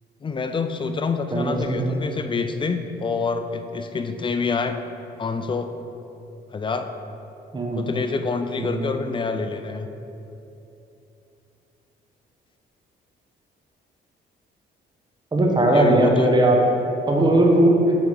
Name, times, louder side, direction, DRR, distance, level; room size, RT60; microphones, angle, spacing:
voice 1, 0.2-4.8 5.2-5.7 6.5-6.9 7.7-9.9 15.7-16.4, left 4 dB, 25° left, 8 dB, 0.4 m, -26 dB
voice 2, 1.3-2.0 7.5-7.8 8.6-8.8 15.3-16.6 17.1-18.0, right 1 dB, 20° right, 0 dB, 1.1 m, -18 dB
6.2 x 3.5 x 5.9 m, 2.9 s
cardioid pair, 90°, 20 cm